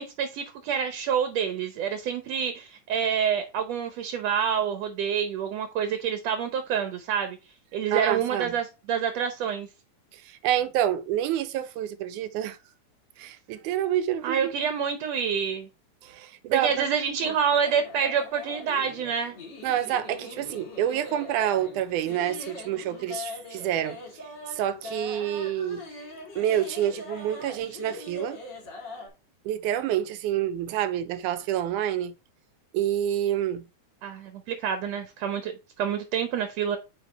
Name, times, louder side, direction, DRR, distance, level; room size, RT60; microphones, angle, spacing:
voice 1, 0.0-7.4 7.7-9.7 14.2-15.7 16.5-19.4 34.0-35.5 35.8-36.8, right 7 dB, 70° right, 1.8 m, -27 dB
voice 2, 7.9-8.5 10.1-12.6 13.2-14.5 16.0-16.9 17.2-17.3 19.6-24.0 24.5-25.9 26.4-28.4 29.5-32.1 32.7-33.6, right 11 dB, 85° right, 2.2 m, -28 dB
sound 1, 17.2-29.1, left 2 dB, 40° left, 2.4 m, -41 dB
8.0 x 5.0 x 3.3 m
omnidirectional pair, 3.5 m